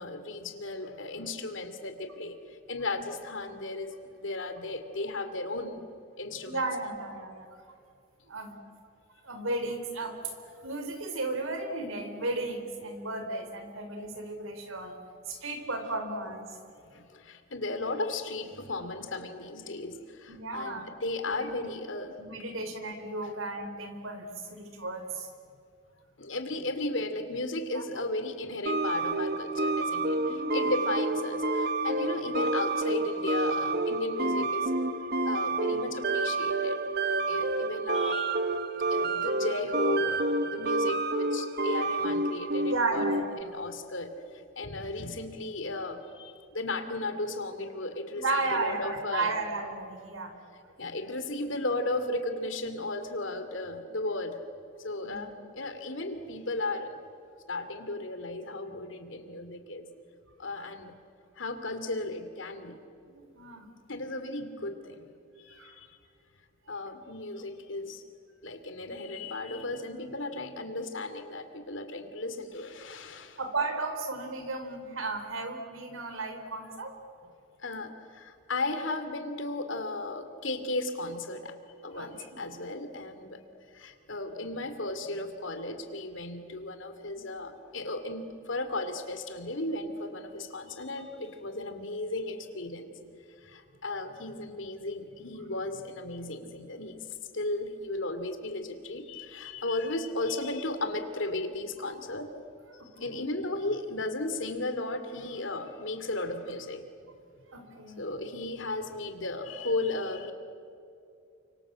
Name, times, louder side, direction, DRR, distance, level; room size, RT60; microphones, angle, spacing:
voice 1, 0.0-5.8 6.2-6.6 16.8-22.6 26.2-34.7 35.2-36.8 37.3-38.5 38.9-43.1 43.4-48.2 48.5-49.3 50.8-54.4 54.8-57.0 57.5-59.9 60.4-60.9 61.4-62.8 63.9-65.1 65.4-66.0 66.7-68.0 68.4-73.4 77.6-81.5 81.8-83.4 83.7-93.0 93.4-102.4 103.0-106.9 108.0-110.3, left 2 dB, 70° left, 8 dB, 2.7 m, -35 dB
voice 2, 6.4-7.5 8.3-8.6 9.2-10.3 10.6-15.0 15.3-16.6 20.3-20.9 21.3-21.7 22.2-25.3 27.7-28.0 30.2-30.7 42.6-43.3 48.2-50.3 55.0-55.3 63.1-63.7 65.5-65.8 68.9-69.0 73.4-77.0 81.9-82.4 102.7-103.2 107.5-108.0, right 2 dB, 85° right, 6 dB, 4.0 m, -34 dB
sound 1, 28.7-43.4, right 2 dB, 50° right, 1.1 m, -29 dB
30.0 x 25.5 x 7.6 m, 2.5 s
head